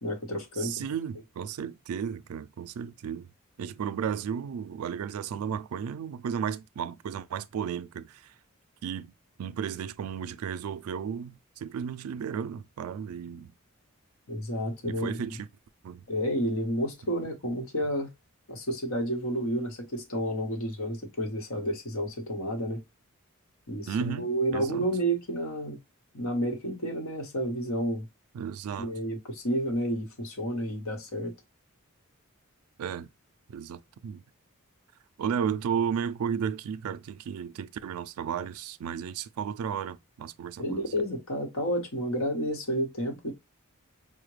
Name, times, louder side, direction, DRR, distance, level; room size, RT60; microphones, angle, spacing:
voice 1, 0.0-0.7 14.3-15.3 16.1-18.1 18.5-22.8 23.7-25.8 26.1-28.1 28.8-31.3 40.6-43.3, equal, 75° left, 1.1 m, -30 dB
voice 2, 0.6-3.3 3.6-8.3 8.8-13.5 14.8-15.5 15.8-16.1 23.9-24.9 28.3-28.9 32.8-33.1 33.5-34.2 35.2-40.9, right 7 dB, 85° right, 0.3 m, -34 dB
4.8 x 2.1 x 3.1 m
head